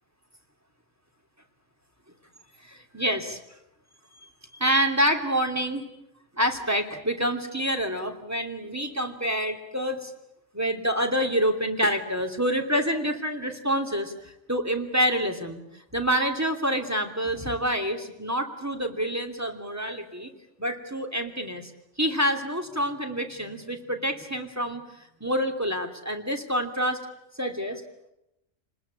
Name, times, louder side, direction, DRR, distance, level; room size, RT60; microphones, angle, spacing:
voice 1, 2.6-3.4 4.5-5.9 6.4-10.1 10.5-20.3 20.6-21.7 22.0-24.8 25.2-27.0 27.4-27.8, equal, 10° right, 5 dB, 2.8 m, -27 dB
29.0 x 20.5 x 8.4 m, 0.86 s
omnidirectional pair, 1.6 m